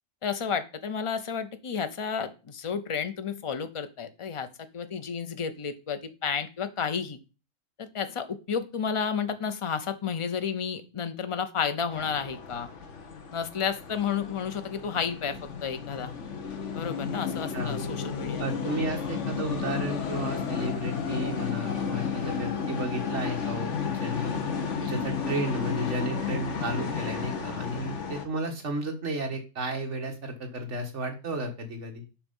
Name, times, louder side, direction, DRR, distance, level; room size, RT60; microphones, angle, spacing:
voice 1, 0.2-4.5 4.7-7.2 7.8-12.7 13.3-16.1 16.7-18.5 24.8-24.9, left 6 dB, 30° left, 9 dB, 0.6 m, -31 dB
sound 1, 11.9-28.3, left 6 dB, 55° left, 1.4 m, -33 dB
voice 2, 18.4-24.4 24.8-32.0, right 1 dB, 50° right, 3 dB, 2.0 m, -33 dB
7.2 x 5.6 x 5.5 m, 0.32 s
omnidirectional pair, 1.6 m